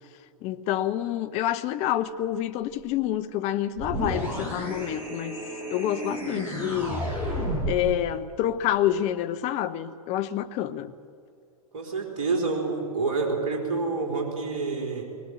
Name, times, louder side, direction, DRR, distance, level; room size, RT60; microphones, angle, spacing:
voice 1, 0.4-5.4 5.7-7.0 7.7-10.9, left 11 dB, 35° left, 0.9 m, -28 dB
sound 1, 3.8-7.9, equal, 10° right, 7.3 m, -31 dB
voice 2, 11.7-15.0, right 4 dB, 55° right, 4.3 m, -28 dB
21.5 x 19.5 x 7.9 m
figure-of-eight pair, 100°, 19 cm